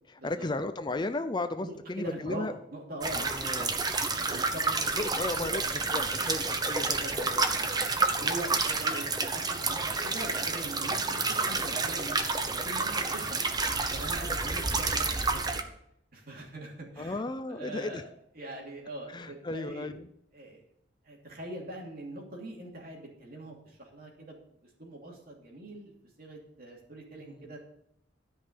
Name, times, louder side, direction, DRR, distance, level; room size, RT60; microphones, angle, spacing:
voice 1, 0.1-2.6 3.2-3.7 4.7-5.6 5.9-7.5 14.3-14.4 17.0-18.1 19.1-20.1 27.2-27.5, left 2 dB, 25° left, 10 dB, 0.5 m, -35 dB
voice 2, 1.6-3.7 4.1-4.6 5.4-5.5 5.9-6.1 6.8-7.1 8.1-13.4 13.9-15.6 16.1-17.2 17.5-18.0 18.3-19.9 20.3-20.6 21.0-24.4 24.8-25.9 26.2-27.6, right 1 dB, 55° right, -1 dB, 2.8 m, -42 dB
sound 1, 3.0-15.6, right 3 dB, 20° right, 0.8 m, -29 dB
13.0 x 5.5 x 6.8 m, 0.73 s
head